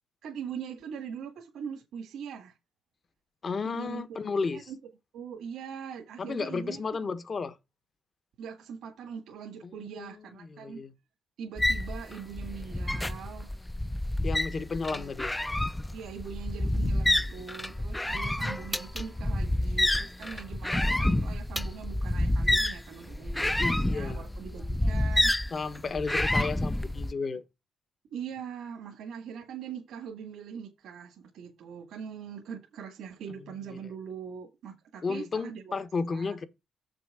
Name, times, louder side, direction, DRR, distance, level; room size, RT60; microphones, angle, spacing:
voice 1, 0.2-2.6 3.6-4.2 4.5-4.8 5.1-7.0 8.4-10.8 11.4-13.5 14.9-15.1 15.9-25.3 28.1-35.8 36.1-36.4, right 7 dB, 80° right, 1.8 m, -42 dB
voice 2, 3.4-4.7 6.2-7.6 9.6-10.9 14.2-15.3 17.2-17.5 23.6-24.3 25.5-27.4 33.7-33.9 35.0-36.5, left 4 dB, 40° left, 1.1 m, -33 dB
sound 1, 11.6-27.1, left 1 dB, 10° left, 0.4 m, -28 dB
7.2 x 6.1 x 4.8 m
cardioid pair, 90°, 0 cm